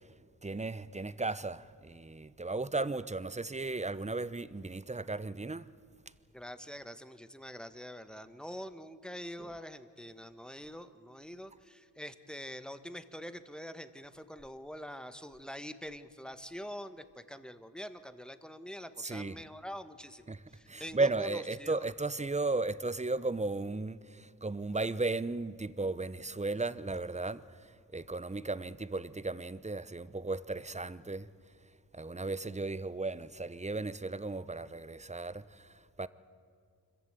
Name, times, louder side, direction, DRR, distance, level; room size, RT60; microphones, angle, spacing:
voice 1, 0.4-5.7 19.0-19.4 20.3-20.4 20.7-27.4 27.9-31.3 31.9-36.1, right 3 dB, 15° right, 0.9 m, -35 dB
voice 2, 6.3-21.8, equal, ahead, 1.5 m, -45 dB
25.0 x 15.0 x 9.1 m
supercardioid pair, 40°, 45 cm